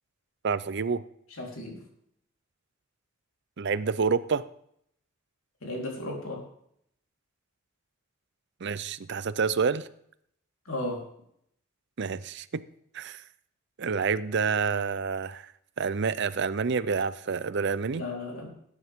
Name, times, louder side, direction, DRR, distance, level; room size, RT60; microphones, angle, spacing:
voice 1, 0.4-1.0 3.6-4.4 8.6-9.9 12.0-12.6 12.9-13.2 13.8-15.5 15.8-18.0, right 5 dB, 55° right, 16 dB, 0.6 m, -28 dB
voice 2, 1.4-1.8 5.6-6.4 10.7-11.0 17.9-18.5, left 1 dB, 90° left, -1 dB, 3.9 m, -34 dB
19.0 x 9.8 x 3.7 m, 0.70 s
head